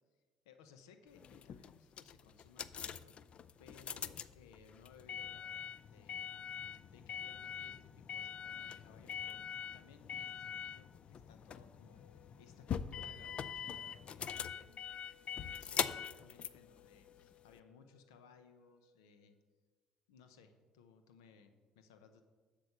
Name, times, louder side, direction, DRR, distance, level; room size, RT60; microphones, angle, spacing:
voice 1, 0.0-3.3 3.6-6.3 6.9-9.4 9.7-15.1 15.4-19.3 20.1-22.2, left 6 dB, 90° left, 8 dB, 0.8 m, -62 dB
sound 1, 1.2-17.6, left 8 dB, 50° left, 0.4 m, -43 dB
sound 2, 11.5-19.3, left 8 dB, 70° left, 3.0 m, -68 dB
7.8 x 6.3 x 6.8 m, 1.3 s
hypercardioid pair, 65°, 2 cm